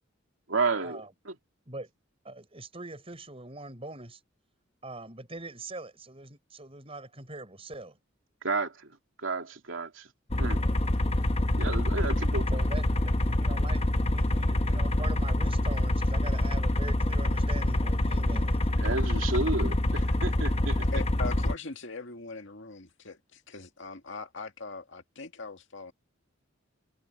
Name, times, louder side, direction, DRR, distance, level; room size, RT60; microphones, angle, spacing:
voice 1, 0.5-1.4 8.4-9.0 9.2-10.1 10.4-10.6 11.6-12.5 18.8-19.7 20.2-20.9, right 3 dB, 75° right, 2.9 m, -31 dB
voice 2, 2.2-4.2 4.8-8.0 12.5-18.7 19.6-19.8, right 2 dB, 30° right, 5.7 m, -42 dB
sound 1, 10.3-21.6, left 1 dB, 30° left, 1.0 m, -26 dB
voice 3, 20.8-25.9, left 3 dB, 65° left, 2.2 m, -40 dB
head